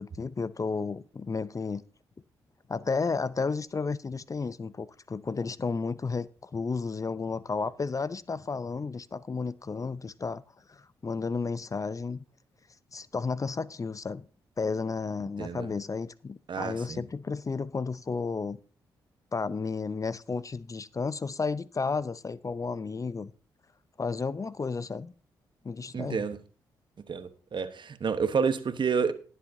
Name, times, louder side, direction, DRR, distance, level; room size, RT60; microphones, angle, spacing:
voice 1, 0.0-1.8 2.7-10.4 10.7-12.2 12.9-14.3 14.6-18.6 19.3-23.3 24.0-25.1 25.6-26.3, left 4 dB, 35° left, 0.6 m, -32 dB
voice 2, 16.5-17.0 25.9-26.4 27.1-29.1, right 6 dB, 50° right, 1.1 m, -29 dB
19.0 x 7.5 x 2.7 m
hypercardioid pair, 40°, 10 cm